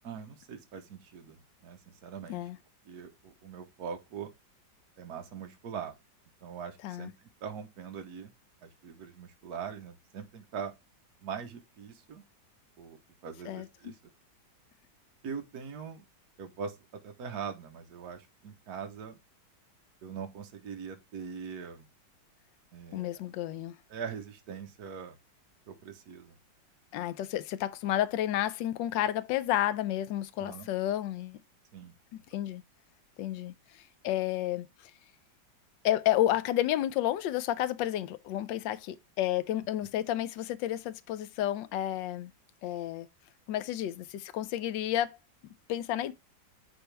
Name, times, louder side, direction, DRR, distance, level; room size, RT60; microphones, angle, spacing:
voice 1, 0.0-2.4 2.8-4.3 5.0-6.0 6.4-8.3 8.6-10.7 11.2-12.2 12.8-14.0 15.2-16.0 16.4-19.2 20.0-21.9 22.7-23.2 23.9-25.2 25.7-26.4 30.4-30.7 31.7-31.9, right 6 dB, 60° right, 1.5 m, -42 dB
voice 2, 13.5-13.9 22.9-23.8 26.9-31.4 32.3-32.6 33.2-34.9 35.8-42.3 42.6-43.1 43.5-45.2 45.7-46.1, left 13 dB, 80° left, 1.3 m, -31 dB
10.0 x 3.7 x 3.3 m
omnidirectional pair, 2.0 m